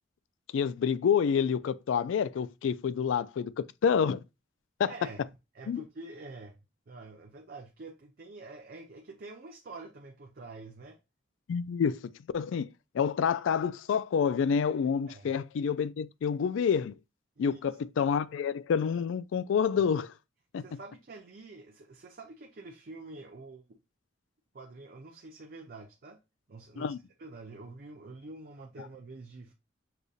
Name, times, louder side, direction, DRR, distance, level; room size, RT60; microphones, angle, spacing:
voice 1, 0.5-3.5 3.8-4.2 4.8-4.9 5.7-5.8 11.5-12.0 12.3-12.7 12.9-16.9 17.4-20.1 20.5-20.6 26.8-27.0, left 7 dB, 75° left, 0.3 m, -28 dB
voice 2, 4.8-5.3 5.5-6.6 6.9-11.0 15.1-15.4 17.4-17.6 20.6-23.8 24.5-26.2 26.5-29.5, right 3 dB, 50° right, 0.5 m, -47 dB
6.6 x 2.6 x 2.3 m
head